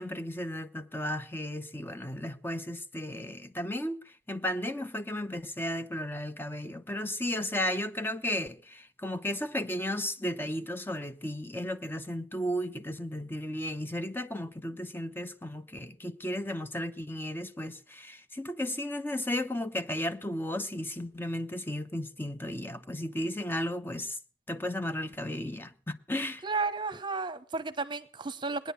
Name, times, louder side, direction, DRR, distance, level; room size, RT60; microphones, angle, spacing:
voice 1, 0.0-24.2 24.5-26.4, left 1 dB, 15° left, 0.8 m, -34 dB
voice 2, 26.4-28.7, right 3 dB, 25° right, 1.0 m, -33 dB
19.0 x 10.5 x 6.9 m
head